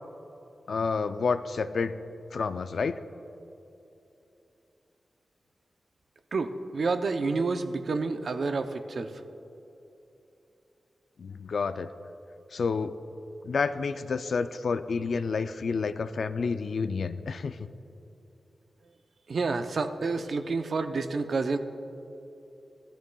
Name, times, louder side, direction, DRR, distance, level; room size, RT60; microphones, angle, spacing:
voice 1, 0.7-2.0 2.3-3.0 11.2-11.9 12.5-12.9 13.4-17.7, left 5 dB, 65° left, 11 dB, 0.4 m, -29 dB
voice 2, 6.3-9.1 19.3-21.6, right 4 dB, 55° right, 8 dB, 0.6 m, -29 dB
17.0 x 12.5 x 2.3 m, 3.0 s
wide cardioid pair, 165°, 0 cm